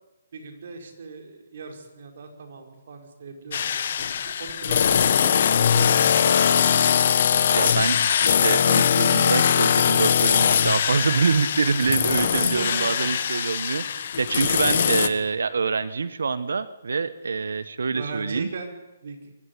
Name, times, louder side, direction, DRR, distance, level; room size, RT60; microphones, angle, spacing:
voice 1, 0.3-6.2 11.8-13.1 13.9-14.1 14.7-15.1 17.9-19.2, right 4 dB, 60° right, 4 dB, 5.0 m, -37 dB
sound 1, 3.5-15.1, left 8 dB, 55° left, 1.4 m, -21 dB
voice 2, 7.5-18.5, right 5 dB, 80° right, 15 dB, 1.1 m, -26 dB
24.0 x 15.0 x 9.8 m, 1.1 s
hypercardioid pair, 150°, 0 cm